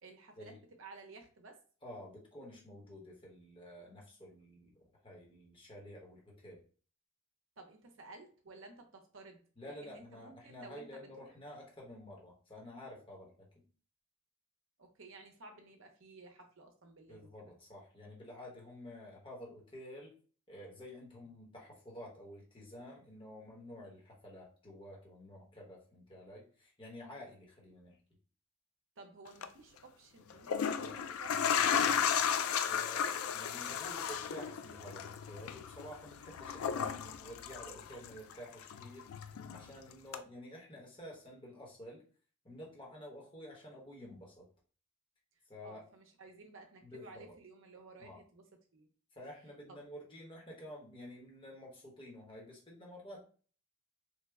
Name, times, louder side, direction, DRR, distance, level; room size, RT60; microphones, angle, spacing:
voice 1, 0.0-1.6 7.6-11.3 14.8-17.5 29.0-31.4 45.6-48.4 48.7-48.9 49.7-49.8, right 3 dB, 65° right, 3 dB, 0.7 m, -54 dB
voice 2, 1.8-6.6 9.6-13.5 17.1-20.1 20.5-28.0 32.7-39.1 39.5-42.0 42.4-44.4 45.5-45.8 46.8-47.3 48.0-48.2 49.1-53.2, left 1 dB, 25° left, -2 dB, 1.0 m, -50 dB
sound 1, 29.3-29.5 30.3-38.3 38.6-39.7 40.1-40.2, left 8 dB, 85° left, 0.3 m, -34 dB
3.3 x 2.1 x 3.4 m, 0.40 s
head